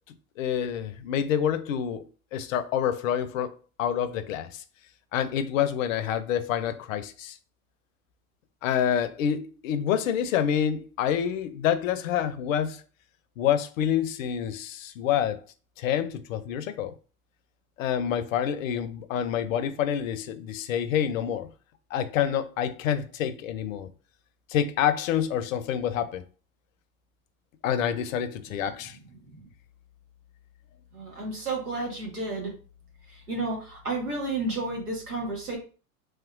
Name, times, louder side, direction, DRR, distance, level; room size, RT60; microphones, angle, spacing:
voice 1, 0.4-2.0 2.3-4.6 5.1-7.4 8.6-12.8 13.4-15.4 15.8-16.9 17.8-21.5 21.9-23.9 24.5-26.2 27.6-29.0, left 9 dB, 60° left, 0.5 m, -27 dB
voice 2, 30.9-32.5 33.1-35.6, right 2 dB, 85° right, 1.5 m, -32 dB
3.1 x 2.9 x 2.5 m
hypercardioid pair, 90°, 45 cm